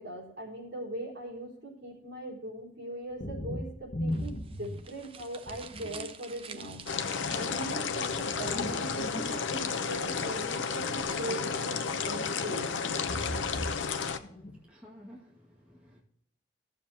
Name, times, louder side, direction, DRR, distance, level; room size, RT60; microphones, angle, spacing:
voice 1, 0.0-12.7, right 1 dB, 60° right, -5 dB, 4.1 m, -40 dB
sound 1, 3.1-5.0 5.5-6.1 6.5-9.7 10.1-11.6 11.9-12.2 12.8-13.9 14.2-14.6, equal, 50° left, 1.2 m, -39 dB
sound 2, 4.1-8.1, right 6 dB, 30° right, 0.6 m, -48 dB
sound 3, 6.9-14.2, left 5 dB, 75° left, 0.7 m, -32 dB
voice 2, 14.1-16.0, equal, 5° right, -5 dB, 1.9 m, -54 dB
16.0 x 7.1 x 2.8 m, 0.71 s
head